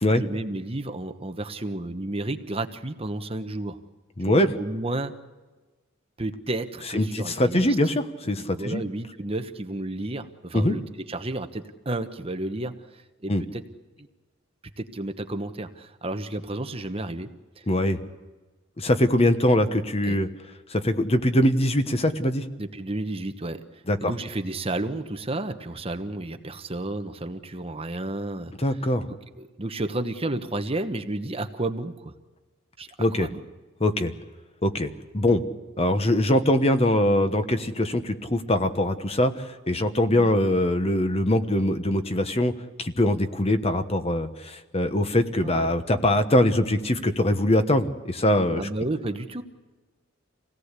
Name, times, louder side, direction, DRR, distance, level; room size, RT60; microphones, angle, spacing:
voice 1, 0.1-3.8 4.2-5.1 6.2-7.8 8.5-13.6 14.8-17.3 20.0-20.2 22.6-28.8 29.4-32.1 32.8-33.4 40.1-40.3 45.4-45.7 48.5-49.4, right 2 dB, 30° right, 8 dB, 1.1 m, -32 dB
voice 2, 4.2-4.5 6.9-8.8 10.5-10.7 13.3-13.4 17.7-18.0 18.8-20.3 20.7-22.4 23.9-24.1 28.6-29.1 33.0-33.3 33.8-34.1 34.6-35.4 35.8-42.5 42.8-48.6, left 1 dB, 30° left, 9 dB, 1.2 m, -22 dB
26.5 x 17.5 x 8.3 m, 1.3 s
head